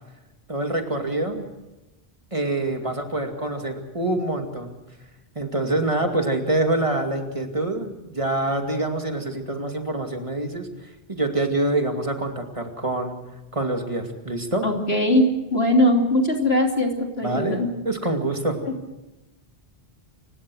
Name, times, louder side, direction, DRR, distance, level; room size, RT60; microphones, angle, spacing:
voice 1, 0.5-1.4 2.3-4.8 5.4-10.7 11.1-13.2 13.5-14.7 17.2-18.6, right 2 dB, 30° right, 4 dB, 2.5 m, -26 dB
voice 2, 14.6-17.7 18.6-18.7, left 1 dB, 70° left, 2 dB, 3.3 m, -20 dB
29.0 x 17.0 x 6.3 m, 1.1 s
omnidirectional pair, 1.1 m